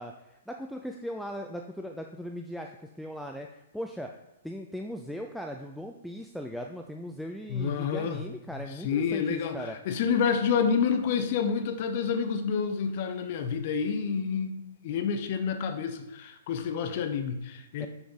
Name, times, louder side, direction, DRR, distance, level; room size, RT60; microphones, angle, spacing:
voice 1, 0.0-3.5 3.7-4.1 4.4-9.8 17.8-17.9, equal, ahead, 3 dB, 0.4 m, -38 dB
voice 2, 7.5-8.2 8.5-17.9, left 6 dB, 45° left, 8 dB, 0.7 m, -29 dB
6.0 x 5.8 x 3.9 m, 0.90 s
figure-of-eight pair, 110°, 0 cm